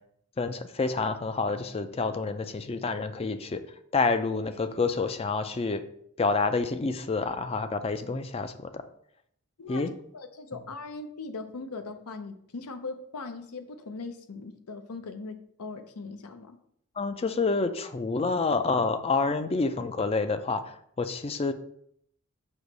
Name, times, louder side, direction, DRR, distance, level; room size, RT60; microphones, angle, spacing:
voice 1, 0.4-3.6 3.9-5.8 6.2-8.5 9.7-9.9 17.0-21.5, left 4 dB, 25° left, 10 dB, 0.4 m, -28 dB
voice 2, 10.1-16.6, left 3 dB, 85° left, 7 dB, 0.6 m, -40 dB
6.3 x 2.9 x 5.3 m, 0.70 s
head